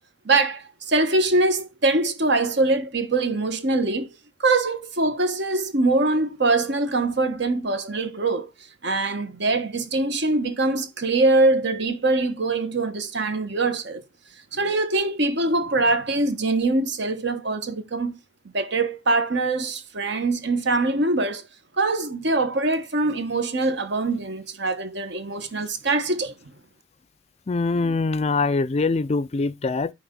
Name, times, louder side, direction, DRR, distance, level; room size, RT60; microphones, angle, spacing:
voice 1, 0.2-4.1 4.4-8.5 8.8-14.0 14.5-18.2 18.5-21.4 21.8-26.3, right 2 dB, 60° right, 1.3 m, -23 dB
voice 2, 27.5-29.9, left 3 dB, 30° left, 0.4 m, -23 dB
9.5 x 3.5 x 5.2 m
head